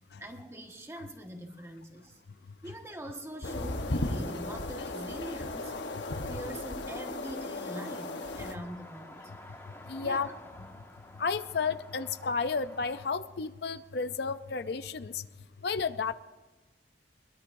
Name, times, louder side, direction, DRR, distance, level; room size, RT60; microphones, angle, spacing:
voice 1, 0.2-2.2 2.6-9.3 10.0-10.3 10.6-10.7, right 1 dB, 15° right, 2 dB, 1.5 m, -43 dB
sound 1, 3.4-8.6, left 2 dB, 80° left, 1.2 m, -35 dB
voice 2, 5.7-6.2 9.8-10.3 11.2-15.3 15.6-16.1, left 5 dB, 60° left, 11 dB, 0.5 m, -32 dB
sound 2, 7.6-13.1, left 1 dB, 15° left, 1.4 m, -51 dB
22.0 x 22.0 x 2.7 m, 1.2 s
head